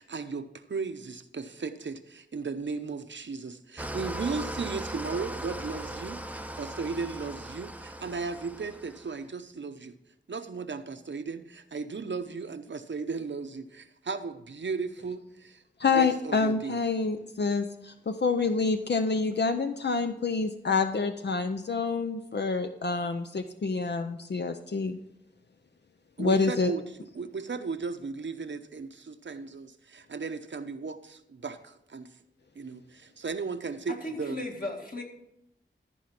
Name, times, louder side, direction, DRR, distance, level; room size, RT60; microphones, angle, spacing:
voice 1, 0.0-9.9 10.3-15.6 15.9-16.8 26.2-26.8 27.1-32.1 32.6-34.4, right 4 dB, 75° right, 9 dB, 0.7 m, -36 dB
Engine starting / Idling, 3.8-9.2, right 1 dB, 10° right, 0.6 m, -38 dB
voice 2, 15.8-25.0 26.2-26.7, left 4 dB, 65° left, 7 dB, 0.6 m, -27 dB
voice 3, 33.9-35.0, left 1 dB, 50° left, 0 dB, 2.2 m, -36 dB
13.5 x 5.0 x 5.9 m, 0.80 s
wide cardioid pair, 65°, 19 cm